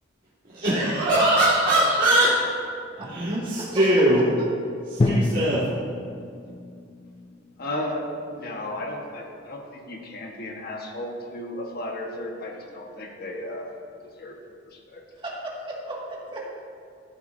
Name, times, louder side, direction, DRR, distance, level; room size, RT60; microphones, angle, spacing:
voice 1, 0.5-2.3 3.0-4.2 5.0-5.7, right 1 dB, 45° right, -11 dB, 2.1 m, -21 dB
voice 2, 2.9-3.8 4.4-4.5 15.2-16.4, right 1 dB, 25° right, -4 dB, 2.0 m, -36 dB
Drum, 5.0-9.0, left 2 dB, 30° left, 0.4 m, -29 dB
voice 3, 7.6-8.1 8.4-13.7 14.0-14.4 14.6-15.0, left 1 dB, 50° left, 0 dB, 1.4 m, -34 dB
14.0 x 9.1 x 2.7 m, 2.4 s
head